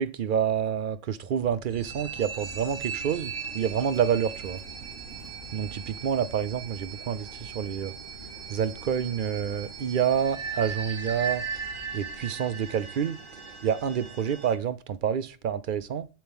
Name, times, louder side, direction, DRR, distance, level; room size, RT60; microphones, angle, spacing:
voice 1, 0.0-4.6 5.5-7.9 8.5-11.4 11.9-13.2 13.6-16.1, right 8 dB, 65° right, 0.5 m, -28 dB
sound 1, 1.4-12.2, left 4 dB, 50° left, 3.2 m, -51 dB
sound 2, 1.7-14.5, right 6 dB, 45° right, 1.3 m, -39 dB
sound 3, 1.8-14.2, right 9 dB, 85° right, 1.1 m, -51 dB
7.7 x 7.0 x 3.6 m
omnidirectional pair, 1.3 m